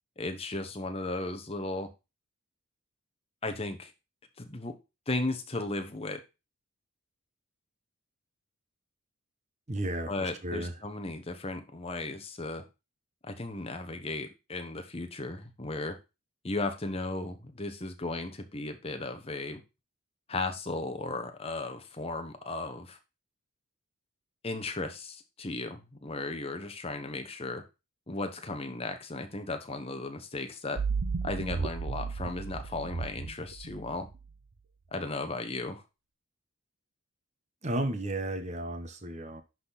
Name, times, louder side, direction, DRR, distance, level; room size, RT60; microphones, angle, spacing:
voice 1, 0.2-1.9 3.4-3.9 4.4-4.7 5.1-6.2 10.1-12.6 13.2-16.0 16.4-19.6 20.3-23.0 24.4-27.6 28.1-30.8 31.2-34.1 34.9-35.8, left 2 dB, 25° left, 1.1 m, -35 dB
voice 2, 9.7-10.7 37.6-39.4, right 1 dB, 30° right, 1.1 m, -33 dB
sound 1, 30.8-34.3, right 5 dB, 60° right, 0.6 m, -34 dB
10.5 x 4.1 x 4.2 m
head